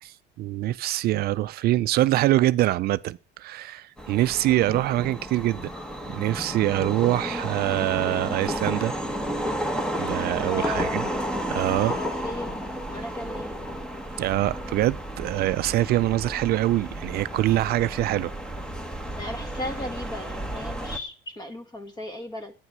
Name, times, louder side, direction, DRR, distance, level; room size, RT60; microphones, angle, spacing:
voice 1, 0.0-5.7 6.1-8.9 10.0-11.0 11.5-12.0 14.2-18.3, right 15 dB, 55° right, 0.5 m, -24 dB
sound 1, 4.0-21.0, equal, 5° left, 1.2 m, -32 dB
voice 2, 4.5-4.8 10.4-11.0 11.8-13.6 19.2-22.5, left 1 dB, 20° left, 1.8 m, -36 dB
11.0 x 9.1 x 6.1 m
cardioid pair, 130°, 19 cm